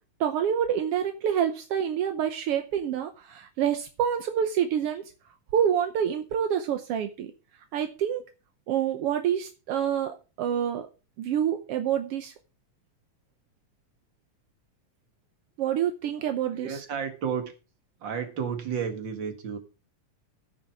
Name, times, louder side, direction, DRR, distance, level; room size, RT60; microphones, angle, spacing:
voice 1, 0.2-5.0 5.5-7.3 7.7-8.2 8.7-10.9 11.2-12.3 15.6-16.8, right 9 dB, 70° right, 7 dB, 1.5 m, -27 dB
voice 2, 16.4-17.5 18.0-19.6, right 7 dB, 40° right, 6 dB, 2.2 m, -32 dB
15.0 x 6.7 x 4.7 m, 0.33 s
omnidirectional pair, 3.6 m